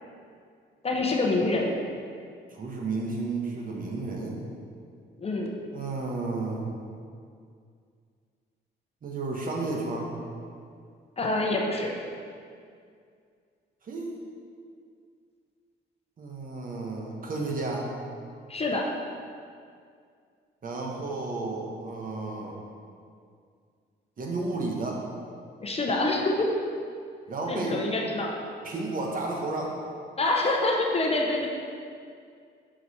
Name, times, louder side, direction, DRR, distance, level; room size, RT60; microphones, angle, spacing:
voice 1, 0.8-1.7 5.2-5.5 11.2-11.9 18.5-18.8 25.6-26.5 27.5-28.4 30.2-31.5, left 2 dB, 30° left, 0 dB, 0.9 m, -26 dB
voice 2, 2.5-4.4 5.7-6.7 9.0-10.1 13.8-14.2 16.2-17.9 20.6-22.6 24.2-25.0 27.3-27.8 28.6-29.8, right 3 dB, 45° right, -1 dB, 1.1 m, -32 dB
5.8 x 5.1 x 4.2 m, 2.2 s
cardioid pair, 90°, 20 cm